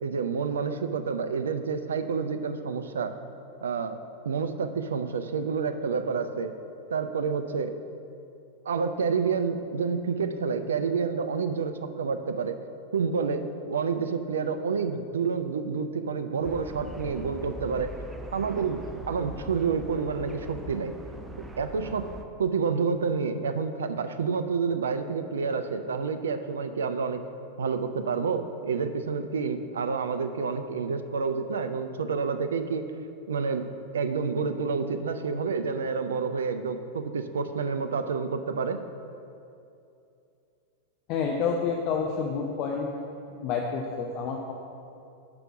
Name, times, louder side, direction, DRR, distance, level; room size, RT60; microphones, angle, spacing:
voice 1, 0.0-3.1 3.6-6.5 6.9-7.8 8.7-12.6 12.9-17.9 18.3-18.8 19.1-20.9 21.6-22.1 22.4-27.2 27.6-32.8 33.3-33.7 33.9-38.8, right 5 dB, 65° right, 9 dB, 0.4 m, -29 dB
sound 1, 16.4-22.2, right 1 dB, 10° right, 0.5 m, -41 dB
voice 2, 41.1-42.9 43.4-44.5, left 5 dB, 40° left, 1 dB, 0.5 m, -29 dB
5.8 x 5.1 x 6.1 m, 2.7 s
figure-of-eight pair, 90°, 0 cm